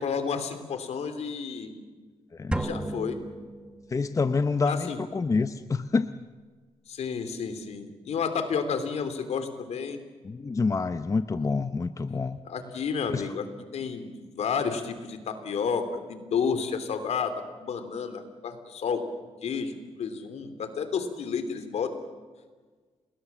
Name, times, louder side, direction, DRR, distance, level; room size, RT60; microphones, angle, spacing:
voice 1, 0.0-1.7 2.5-3.2 4.6-5.0 6.9-10.0 12.4-13.5 13.7-19.0 19.4-19.7 20.0-21.9, left 6 dB, 75° left, 9 dB, 3.2 m, -31 dB
sound 1, 2.5-4.2, right 1 dB, 10° right, 1.4 m, -33 dB
voice 2, 3.9-6.1 10.2-12.4 13.1-13.2, left 4 dB, 30° left, 11 dB, 0.8 m, -27 dB
29.5 x 20.0 x 7.3 m, 1.4 s
cardioid pair, 100°, 11 cm